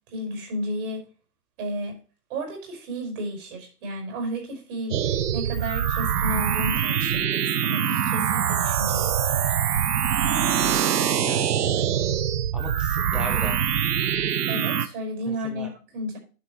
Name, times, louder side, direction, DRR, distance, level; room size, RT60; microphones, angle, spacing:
voice 1, 0.1-1.0 1.6-2.0 2.3-9.5 14.5-16.2, equal, 35° right, 2 dB, 5.4 m, -33 dB
sound 1, 4.9-14.9, right 9 dB, 70° right, 0.9 m, -24 dB
voice 2, 11.2-12.1 12.5-13.6 15.4-15.7, equal, ahead, 2 dB, 1.2 m, -37 dB
11.0 x 6.4 x 3.1 m, 0.34 s
hypercardioid pair, 145°, 49 cm